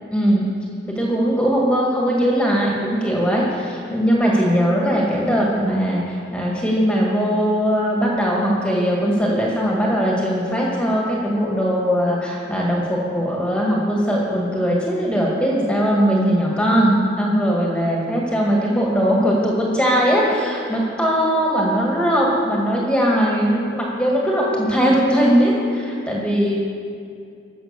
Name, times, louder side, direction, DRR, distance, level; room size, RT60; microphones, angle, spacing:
voice 1, 0.1-26.6, equal, 5° left, -3 dB, 1.8 m, -20 dB
14.5 x 6.4 x 6.8 m, 2.4 s
head